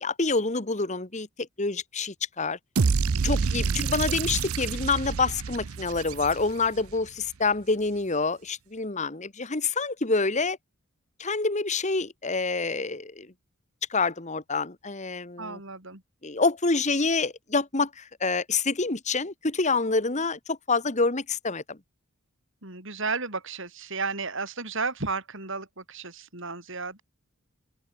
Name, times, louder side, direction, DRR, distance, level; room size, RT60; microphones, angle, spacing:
voice 1, 0.0-2.6 3.2-10.6 11.2-13.3 13.9-15.6 16.2-21.8, left 3 dB, 35° left, 1.6 m, -27 dB
sound 1, 2.8-6.9, right 5 dB, 80° right, 0.6 m, -27 dB
voice 2, 15.4-16.0 22.6-27.0, right 4 dB, 60° right, 6.3 m, -33 dB
open air
head